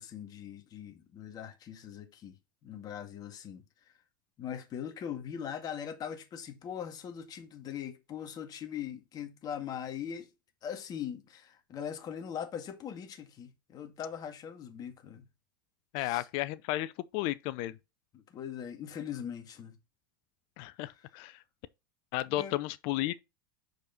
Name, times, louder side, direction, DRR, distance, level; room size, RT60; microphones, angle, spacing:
voice 1, 0.0-2.4 2.6-3.6 4.4-10.3 10.6-15.3 16.0-16.3 18.1-19.8 20.9-21.1 22.3-22.6, left 8 dB, 35° left, 1.9 m, -41 dB
voice 2, 15.9-17.8 20.6-21.4 22.1-23.2, left 16 dB, 50° left, 0.5 m, -33 dB
6.5 x 5.2 x 4.0 m
hypercardioid pair, 90°, 11 cm